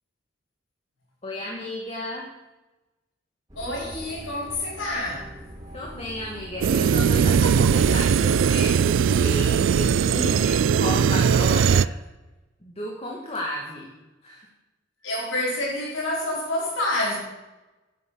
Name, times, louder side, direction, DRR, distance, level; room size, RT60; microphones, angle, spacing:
voice 1, 1.2-2.2 5.7-11.9 12.6-13.9 14.2-14.5, left 1 dB, 30° left, -1 dB, 2.0 m, -33 dB
sound 1, 3.5-10.5, equal, 20° right, 4.3 m, -41 dB
voice 2, 3.6-5.4 10.1-10.6 15.0-17.2, left 1 dB, 80° left, -3 dB, 5.5 m, -28 dB
sound 2, 6.6-11.9, right 7 dB, 80° right, 0.4 m, -20 dB
11.5 x 9.9 x 7.1 m, 1.1 s
head